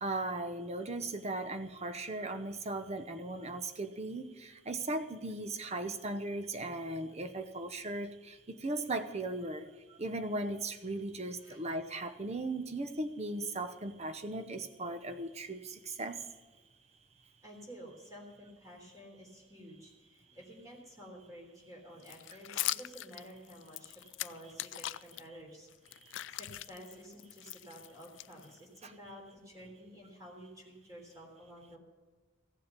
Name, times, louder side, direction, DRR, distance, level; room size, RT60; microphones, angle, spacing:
voice 1, 0.0-9.7 10.0-16.2 28.8-28.9, right 2 dB, 35° right, 9 dB, 0.9 m, -37 dB
voice 2, 17.4-25.7 26.3-31.8, equal, 20° right, -1 dB, 3.5 m, -51 dB
sound 1, 22.0-25.2 25.7-28.8, left 16 dB, 75° left, 0.3 m, -41 dB
15.5 x 7.6 x 6.8 m, 1.4 s
head